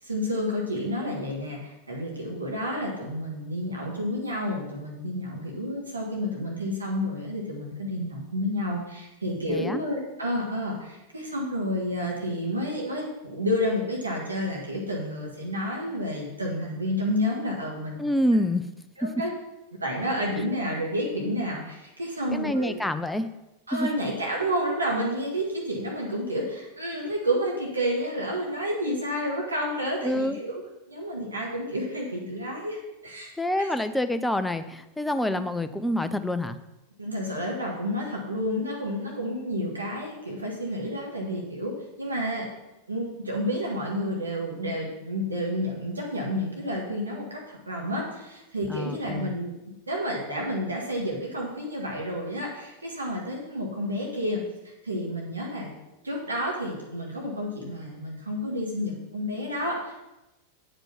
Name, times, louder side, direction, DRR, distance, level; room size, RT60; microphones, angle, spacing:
voice 1, 0.0-18.0 19.0-19.3 19.8-22.7 23.7-30.5 30.9-33.7 35.4-35.5 37.0-41.7 42.0-42.5 42.9-47.4 47.7-49.5 49.9-54.4 54.8-55.7 56.0-60.0, equal, 80° right, -2 dB, 1.7 m, -30 dB
voice 2, 9.5-9.8 18.0-18.6 19.0-19.1 22.3-23.3 23.7-23.9 30.0-30.4 33.4-36.6 48.7-49.4, left 1 dB, 5° left, 10 dB, 0.6 m, -27 dB
8.9 x 5.3 x 5.9 m, 0.96 s
figure-of-eight pair, 90°, 0 cm